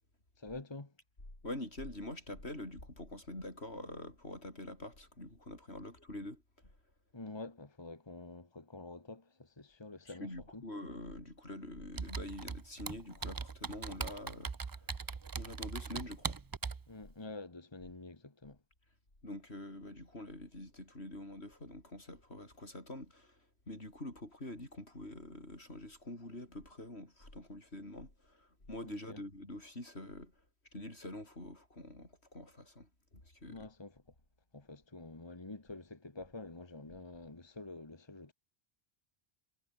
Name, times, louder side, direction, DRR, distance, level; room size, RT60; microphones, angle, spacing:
voice 1, 0.4-1.0 7.1-10.7 16.9-18.6 28.8-29.2 33.5-34.1 34.5-38.3, left 2 dB, 25° left, 1.7 m, -48 dB
voice 2, 1.4-6.8 10.1-15.0 15.3-16.4 19.2-30.3 30.7-33.6, left 1 dB, 85° left, 7.6 m, -46 dB
Computer keyboard, 12.0-16.9, right 5 dB, 30° right, 0.4 m, -40 dB
omnidirectional pair, 1.1 m